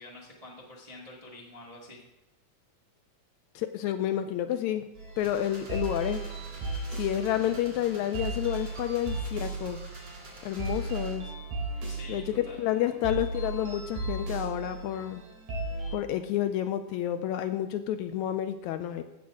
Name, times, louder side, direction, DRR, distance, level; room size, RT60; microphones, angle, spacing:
voice 1, 0.0-2.0 11.9-12.9, left 2 dB, 25° right, -3 dB, 0.7 m, -47 dB
voice 2, 3.6-4.8 5.2-6.2 6.9-9.8 10.4-11.3 12.1-12.2 12.5-15.2 15.9-19.0, left 11 dB, 80° left, 9 dB, 1.8 m, -30 dB
sound 1, 5.0-16.0, right 3 dB, 75° right, 4.5 m, -36 dB
sound 2, 5.2-11.2, right 1 dB, 50° right, 3.6 m, -49 dB
15.0 x 7.5 x 3.6 m, 0.96 s
omnidirectional pair, 3.5 m